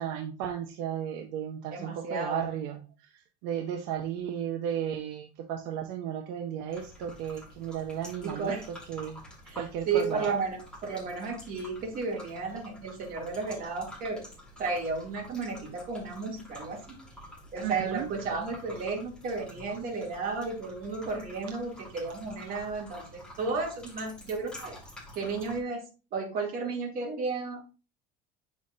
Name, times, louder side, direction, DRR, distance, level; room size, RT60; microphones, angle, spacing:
voice 1, 0.0-9.2 9.6-10.3 17.6-18.1, right 9 dB, 75° right, 4 dB, 1.0 m, -34 dB
voice 2, 1.7-2.5 8.2-8.7 9.5-9.6 9.9-14.2 14.6-17.0 17.5-24.8 25.1-25.8 26.1-27.7, right 4 dB, 45° right, 0 dB, 2.4 m, -33 dB
sound 1, 6.7-25.6, equal, 5° left, 1.9 m, -49 dB
8.5 x 6.2 x 2.5 m, 0.32 s
cardioid pair, 150°, 20 cm